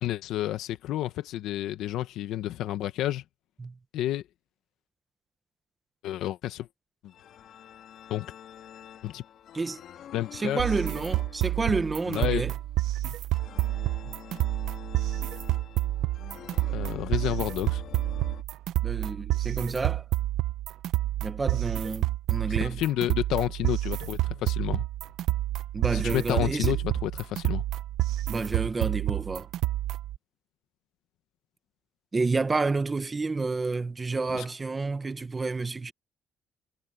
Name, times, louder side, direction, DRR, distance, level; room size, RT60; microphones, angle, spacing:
voice 1, 0.0-3.2 3.9-4.2 6.0-6.7 7.0-7.1 8.1-8.3 9.0-9.2 10.1-10.6 12.1-12.4 13.0-13.1 14.0-14.2 16.7-17.8 22.6-24.8 25.9-27.6 34.3-34.4, left 13 dB, 90° left, 1.2 m, -30 dB
sound 1, 7.1-18.4, left 10 dB, 55° left, 4.2 m, -47 dB
voice 2, 10.3-12.5 18.8-20.0 21.2-22.8 25.7-26.7 28.3-29.5 32.1-35.9, right 3 dB, 20° right, 1.1 m, -29 dB
sound 2, 10.6-30.2, right 15 dB, 75° right, 0.9 m, -29 dB
cardioid pair, 165°, 0 cm